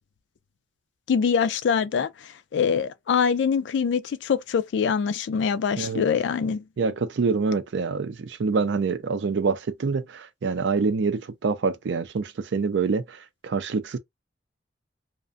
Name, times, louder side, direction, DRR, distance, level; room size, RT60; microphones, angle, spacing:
voice 1, 1.1-6.6, left 6 dB, 90° left, 0.3 m, -24 dB
voice 2, 6.8-14.0, right 4 dB, 85° right, 0.4 m, -26 dB
2.5 x 2.1 x 2.4 m
head